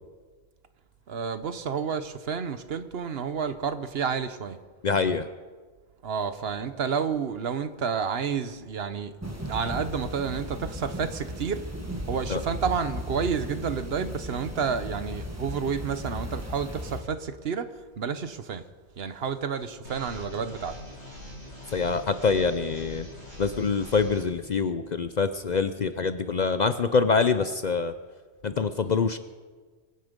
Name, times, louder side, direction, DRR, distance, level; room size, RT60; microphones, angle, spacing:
voice 1, 1.1-4.6 6.0-9.1 9.5-11.6 12.1-18.6 19.0-20.8, right 6 dB, 60° right, 11 dB, 1.1 m, -30 dB
voice 2, 4.8-5.3 12.3-12.4 21.7-23.1 23.4-27.9 28.4-29.2, left 5 dB, 50° left, 11 dB, 0.6 m, -25 dB
sound 1, 9.2-17.0, equal, 15° right, 1.6 m, -36 dB
sound 2, 19.8-24.2, left 1 dB, 85° left, 5.6 m, -42 dB
24.0 x 9.7 x 5.2 m, 1.4 s
omnidirectional pair, 1.2 m